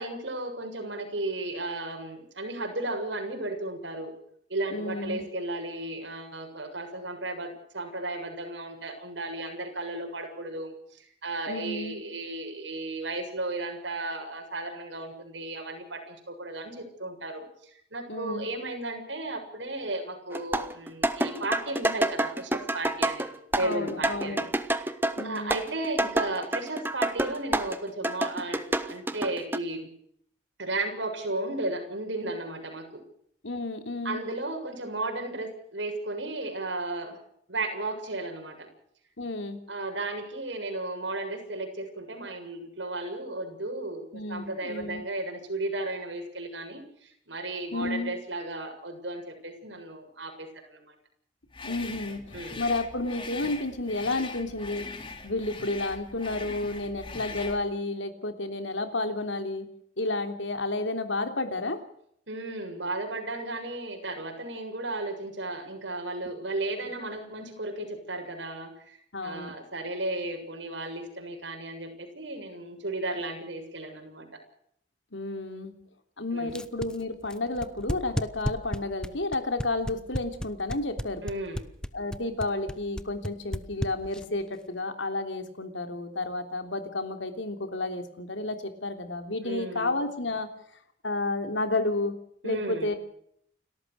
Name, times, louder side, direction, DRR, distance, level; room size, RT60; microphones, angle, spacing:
voice 1, 0.0-4.1 4.5-17.4 17.9-24.9 25.2-29.9 30.6-33.0 34.0-37.2 37.5-38.7 39.7-50.9 52.3-52.6 62.3-69.0 69.2-74.3 76.3-76.6 81.2-81.6 89.4-89.9 92.4-92.9, right 2 dB, 75° right, 3 dB, 7.2 m, -34 dB
voice 2, 4.7-5.2 11.5-12.0 18.1-18.5 23.6-24.5 25.2-25.6 33.4-34.2 39.2-39.6 44.1-45.0 47.7-48.1 51.6-54.9 55.2-59.7 60.0-61.8 69.1-69.5 75.1-75.7 76.2-81.2 81.9-90.5 91.0-92.1 92.4-93.0, left 2 dB, 85° left, 7 dB, 3.3 m, -31 dB
sound 1, 20.3-27.8 28.0-29.6, right 1 dB, 10° right, 1.1 m, -28 dB
sound 2, 51.5-57.7, left 3 dB, 25° left, 2.4 m, -41 dB
sound 3, 76.5-84.4, equal, 5° left, 0.8 m, -32 dB
29.5 x 14.0 x 6.5 m, 0.68 s
head